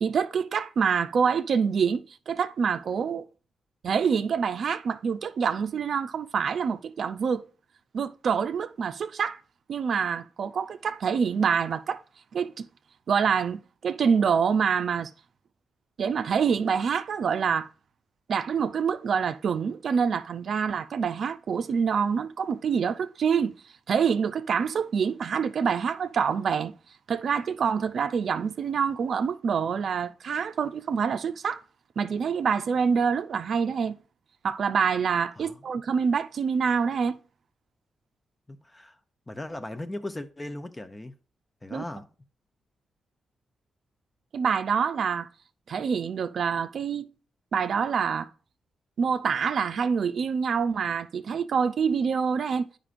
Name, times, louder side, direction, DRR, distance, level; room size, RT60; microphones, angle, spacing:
voice 1, 0.0-3.3 3.8-7.4 7.9-9.4 9.7-12.0 12.3-12.7 13.1-15.1 16.0-17.7 18.3-23.5 23.9-26.7 27.1-31.6 32.0-34.0 34.4-37.2 41.7-41.8 44.3-45.3 45.7-47.1 47.5-48.3 49.0-52.7, right 6 dB, 65° right, 0.5 m, -26 dB
voice 2, 38.5-39.0 39.3-41.1 41.6-42.1, left 1 dB, 20° left, 0.7 m, -38 dB
11.0 x 5.1 x 2.5 m
cardioid pair, 65°, 0 cm